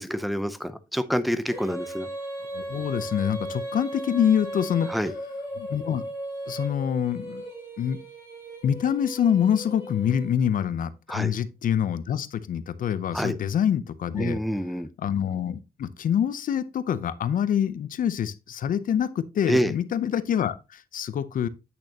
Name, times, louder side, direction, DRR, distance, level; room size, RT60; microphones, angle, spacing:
voice 1, 0.0-2.1 4.9-5.1 11.1-11.3 13.1-13.4 14.2-14.9 19.5-19.7, equal, ahead, 0.5 m, -27 dB
Female singing, 1.5-10.6, right 1 dB, 20° right, 3.6 m, -36 dB
voice 2, 2.5-5.0 5.6-6.0 6.5-7.4 7.8-8.0 8.6-14.4 15.0-21.5, left 9 dB, 70° left, 0.6 m, -26 dB
8.6 x 6.4 x 2.8 m
wide cardioid pair, 175°, 15 cm